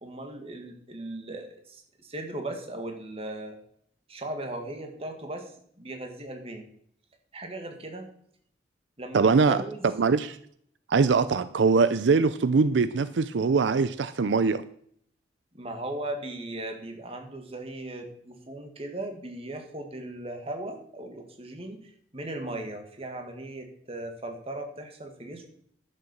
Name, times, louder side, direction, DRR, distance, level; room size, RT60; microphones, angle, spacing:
voice 1, 0.0-3.6 4.1-5.5 5.8-6.6 7.3-8.1 9.0-9.8 15.5-25.5, right 1 dB, 35° right, 2.0 m, -38 dB
voice 2, 9.1-9.6 10.0-10.4 10.9-14.6, right 4 dB, 80° right, 0.5 m, -22 dB
11.0 x 6.8 x 7.2 m
head